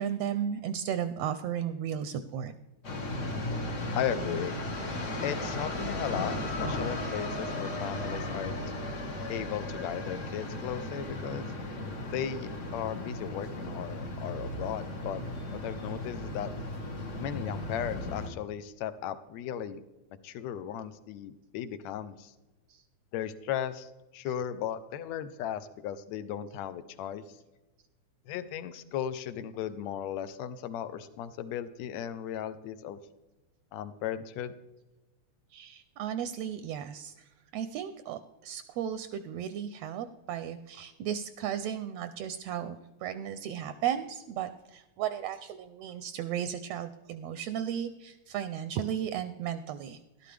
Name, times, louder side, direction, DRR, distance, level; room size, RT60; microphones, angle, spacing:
voice 1, 0.0-2.5 35.5-37.1 37.5-50.3, right 9 dB, 80° right, 11 dB, 1.6 m, -35 dB
sound 1, 2.8-18.3, left 1 dB, 55° left, 0.8 m, -36 dB
voice 2, 4.0-4.6 5.2-8.6 9.3-11.5 12.1-15.2 15.5-16.5 17.2-19.8 20.2-22.3 23.1-27.2 28.3-33.0 33.7-34.5, left 9 dB, 75° left, 13 dB, 1.8 m, -36 dB
13.0 x 12.0 x 3.3 m, 1.1 s
omnidirectional pair, 3.3 m